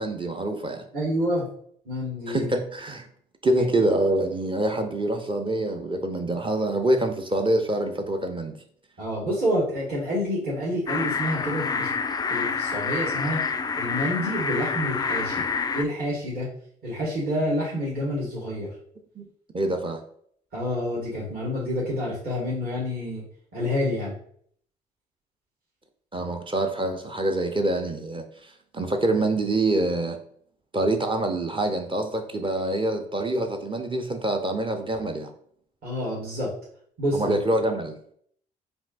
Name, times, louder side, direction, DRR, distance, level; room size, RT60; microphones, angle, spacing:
voice 1, 0.0-0.8 2.3-3.1 3.4-8.6 19.2-19.3 19.5-20.0 26.1-30.2 30.7-35.3 37.1-38.0, right 1 dB, 25° right, 4 dB, 0.6 m, -26 dB
voice 2, 0.9-1.5 1.8-2.5 3.5-3.7 9.0-11.9 12.3-13.4 13.7-15.4 15.7-16.5 16.8-18.7 20.5-23.2 23.5-24.1 35.8-36.5 37.0-37.3, equal, 45° right, -7 dB, 1.7 m, -28 dB
sound 1, 10.9-15.8, left 5 dB, 20° left, 0.3 m, -27 dB
5.2 x 2.7 x 2.5 m, 0.63 s
hypercardioid pair, 50°, 21 cm